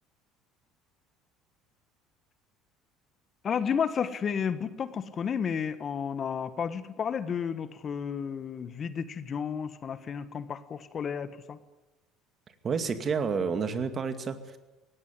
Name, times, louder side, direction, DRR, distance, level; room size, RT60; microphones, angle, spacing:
voice 1, 3.4-11.6, left 7 dB, 40° left, 13 dB, 1.4 m, -32 dB
voice 2, 12.6-14.6, right 5 dB, 40° right, 8 dB, 2.3 m, -30 dB
18.5 x 16.5 x 9.7 m, 1.1 s
hypercardioid pair, 65°, 0 cm